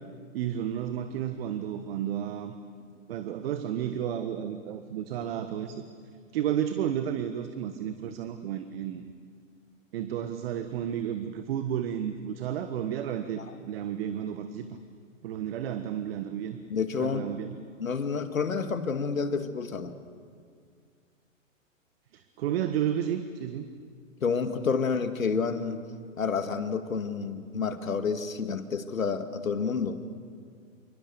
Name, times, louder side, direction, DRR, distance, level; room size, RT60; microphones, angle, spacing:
voice 1, 0.3-2.5 3.1-5.8 6.3-9.0 9.9-14.8 15.2-16.6 17.0-17.5 22.1-23.7, right 10 dB, 45° right, 9 dB, 1.5 m, -32 dB
voice 2, 16.7-17.2 17.8-19.9 24.2-25.8 26.2-30.0, left 5 dB, 80° left, 8 dB, 2.3 m, -29 dB
27.5 x 24.5 x 7.1 m, 2.1 s
hypercardioid pair, 125°, 40 cm